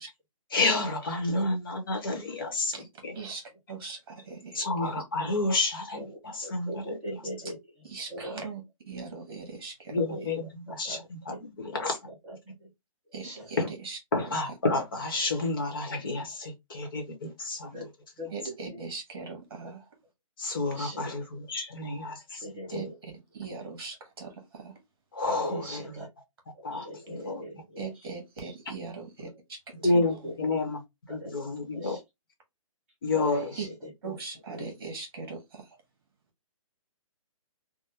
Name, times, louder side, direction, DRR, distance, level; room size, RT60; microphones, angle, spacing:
voice 1, 0.5-2.7 3.0-3.1 4.5-7.0 9.9-12.0 13.6-13.7 14.1-17.7 20.4-22.5 22.7-22.8 25.1-26.0 26.6-27.4 29.8-30.8 31.1-32.0 33.0-33.5 34.0-34.2, left 2 dB, 40° left, 1.0 m, -30 dB
voice 2, 3.1-4.9 7.8-10.0 13.1-14.0 18.3-19.8 22.7-22.9 23.3-24.7 27.8-30.0 33.6-33.7 34.0-35.8, right 4 dB, 45° right, 1.4 m, -40 dB
voice 3, 6.4-7.6 8.1-8.5 9.9-10.3 10.8-11.0 11.3-11.4 11.7-11.9 12.3-12.7 13.2-13.5 17.7-17.9 18.2-18.8 20.6-21.1 22.4-22.9 25.3-26.1 26.7-27.9 29.2-29.3 30.1-30.5 31.1-31.3 31.7-32.0 33.1-33.9 34.5-34.6, equal, 5° right, 0.5 m, -39 dB
3.4 x 2.2 x 2.8 m
hypercardioid pair, 175°, 18 cm